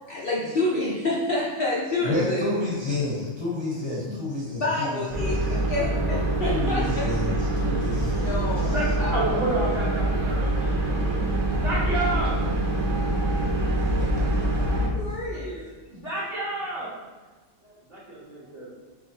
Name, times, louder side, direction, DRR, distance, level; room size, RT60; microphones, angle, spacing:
voice 1, 0.1-2.5 3.9-4.2 4.6-7.1 8.2-9.3 14.9-15.7, left 2 dB, 55° left, -6 dB, 0.8 m, -28 dB
voice 2, 1.9-5.5 6.5-8.7 17.6-17.7, left 2 dB, 25° left, -7 dB, 0.9 m, -30 dB
sound 1, 5.1-14.9, right 1 dB, 60° right, 1.5 m, -25 dB
voice 3, 8.6-11.2 11.6-12.3 15.2-15.4 15.9-16.9 17.9-18.7, right 2 dB, 40° right, -7 dB, 1.4 m, -30 dB
5.6 x 3.1 x 2.7 m, 1.3 s
omnidirectional pair, 1.4 m